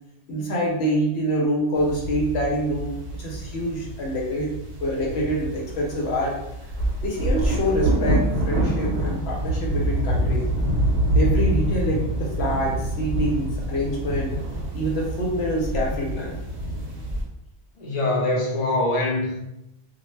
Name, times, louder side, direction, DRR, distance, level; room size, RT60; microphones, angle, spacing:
voice 1, 0.3-4.5 4.8-6.4 7.0-10.5 11.1-14.4 14.7-16.4, equal, 65° left, -2 dB, 0.9 m, -26 dB
sound 1, 1.8-17.2, right 1 dB, 65° right, 1.1 m, -26 dB
voice 2, 17.8-19.4, left 2 dB, 40° left, -3 dB, 0.6 m, -23 dB
2.3 x 2.1 x 3.1 m, 0.85 s
omnidirectional pair, 1.2 m